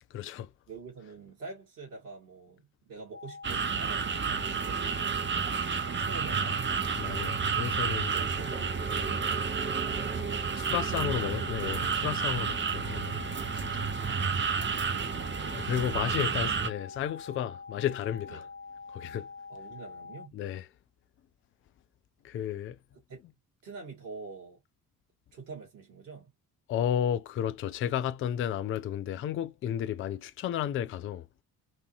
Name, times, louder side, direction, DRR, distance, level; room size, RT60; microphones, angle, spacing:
voice 1, 0.1-0.5 7.0-8.2 9.0-9.1 10.4-13.3 13.6-13.9 15.5-18.4 18.9-19.3 20.3-20.7 22.2-22.8 26.7-31.3, left 10 dB, 30° left, 0.4 m, -33 dB
voice 2, 0.7-5.0 5.8-6.8 8.1-9.7 10.9-11.3 14.1-14.5 16.1-16.2 18.3-18.4 19.5-20.4 23.1-23.2 23.6-24.6 25.3-26.3, right 4 dB, 75° right, 2.0 m, -46 dB
sound 1, 3.1-20.3, left 4 dB, 90° right, 0.7 m, -45 dB
sound 2, 3.4-16.7, right 6 dB, 25° right, 0.8 m, -31 dB
4.3 x 2.7 x 2.6 m
figure-of-eight pair, 45°, 47 cm